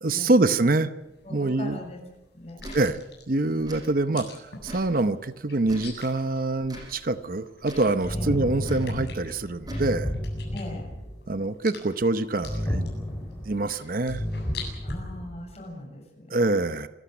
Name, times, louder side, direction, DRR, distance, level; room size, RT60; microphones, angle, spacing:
voice 1, 0.0-0.9 1.3-1.8 2.7-3.0 3.3-4.3 4.6-10.1 11.3-12.8 13.5-14.2 16.3-16.9, right 2 dB, 50° right, 11 dB, 0.8 m, -25 dB
sound 1, 1.0-15.0, left 5 dB, 65° left, 8.0 m, -47 dB
voice 2, 1.2-2.0 2.3-2.6 8.1-8.3 10.5-10.9 14.8-16.3, left 1 dB, 35° left, 2 dB, 7.1 m, -39 dB
Tick / Tick-tock, 2.6-2.8 3.6-3.8 4.6-4.9 5.6-5.9 6.6-6.9 7.6-7.9 8.6-8.9 9.6-9.9, equal, 20° right, 7.9 m, -41 dB
sound 2, 8.0-11.0 12.4-13.5 14.1-15.3, left 1 dB, 15° left, 5.3 m, -31 dB
27.0 x 15.0 x 8.1 m, 0.99 s
head